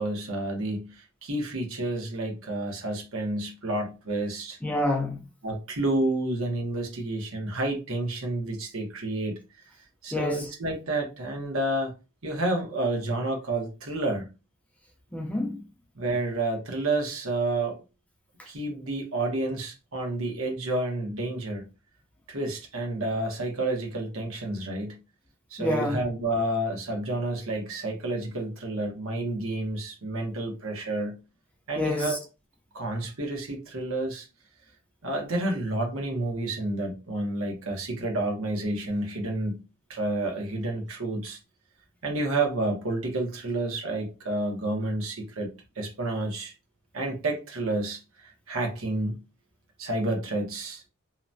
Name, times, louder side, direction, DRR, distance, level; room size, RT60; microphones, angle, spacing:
voice 1, 0.0-4.6 5.4-9.4 10.0-11.9 12.2-14.3 16.0-17.8 18.5-21.6 22.3-25.0 25.5-31.2 31.7-32.2 32.7-34.3 35.0-39.6 39.9-41.4 42.0-46.5 46.9-49.2 49.8-50.8, right 2 dB, 70° right, 1.0 m, -30 dB
voice 2, 4.6-5.2 10.1-10.5 15.1-15.6 25.6-26.0 31.8-32.2, left 1 dB, 5° left, 0.4 m, -28 dB
2.9 x 2.1 x 2.6 m
head